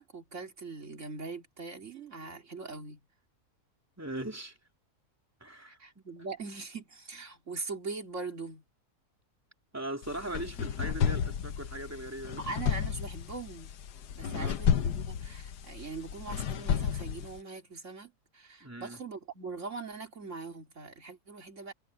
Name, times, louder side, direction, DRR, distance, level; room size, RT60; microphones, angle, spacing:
voice 1, 0.0-3.0 5.7-8.6 12.4-13.7 14.2-21.7, right 4 dB, 50° right, 3.1 m, -41 dB
voice 2, 4.0-4.6 5.4-6.0 9.7-12.5 14.2-14.6 18.6-19.0, right 1 dB, 10° right, 3.1 m, -40 dB
sound 1, 10.0-17.4, left 8 dB, 90° left, 1.5 m, -32 dB
omnidirectional pair, 1.7 m